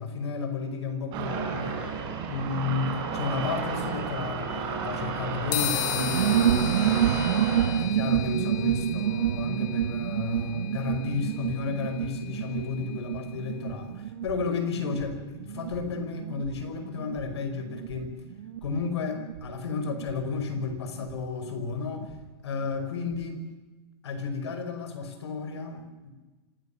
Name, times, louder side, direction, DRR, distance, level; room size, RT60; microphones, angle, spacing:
voice 1, 0.0-1.8 2.3-7.0 7.8-18.1 18.6-22.1 22.4-23.5 24.0-26.1, left 4 dB, 85° left, 8 dB, 5.3 m, -33 dB
sound 1, 1.1-7.7, right 5 dB, 35° right, 6.1 m, -32 dB
sound 2, 5.5-13.2, left 17 dB, 45° left, 2.0 m, -36 dB
sound 3, 5.9-22.2 22.5-22.6 22.8-23.2, right 10 dB, 85° right, 1.5 m, -29 dB
26.0 x 18.5 x 7.2 m, 1.2 s
supercardioid pair, 155°, 14 cm